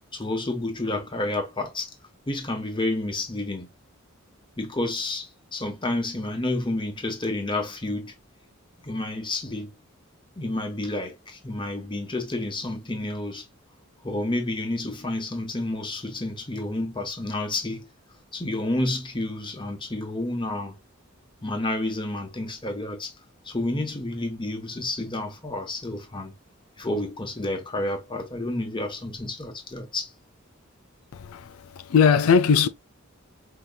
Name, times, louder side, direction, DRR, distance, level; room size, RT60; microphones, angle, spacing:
voice 1, 0.1-1.9 2.3-3.7 4.6-8.1 8.8-9.7 10.4-13.4 14.0-17.9 18.3-20.7 21.4-23.1 23.4-26.3 26.8-30.1, left 2 dB, 25° left, 1.0 m, -30 dB
voice 2, 31.1-32.7, left 6 dB, 85° left, 0.4 m, -20 dB
5.1 x 2.9 x 2.3 m
head